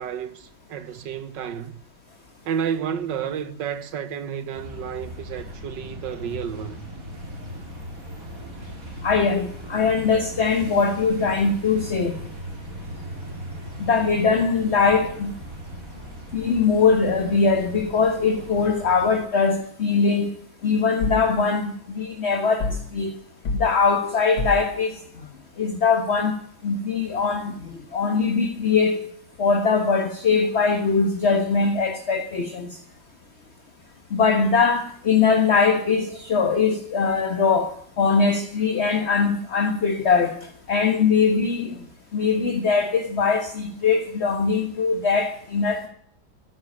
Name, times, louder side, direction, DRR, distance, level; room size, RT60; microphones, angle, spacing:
voice 1, 0.0-1.8 2.5-6.9, right 8 dB, 65° right, 1.8 m, -31 dB
sound 1, 4.5-19.2, equal, 45° right, 4.0 m, -38 dB
voice 2, 9.0-12.2 13.9-15.3 16.3-20.3 20.6-23.1 23.6-25.3 25.6-26.3 26.6-29.1 29.4-32.8 34.1-37.7 38.0-40.3 40.7-41.8 42.1-45.9, left 5 dB, 35° left, 1.5 m, -21 dB
sound 2, 21.0-21.3 22.6-22.9 23.4-23.7 24.4-24.7, left 2 dB, 85° left, 2.5 m, -27 dB
14.0 x 9.7 x 9.6 m
omnidirectional pair, 2.1 m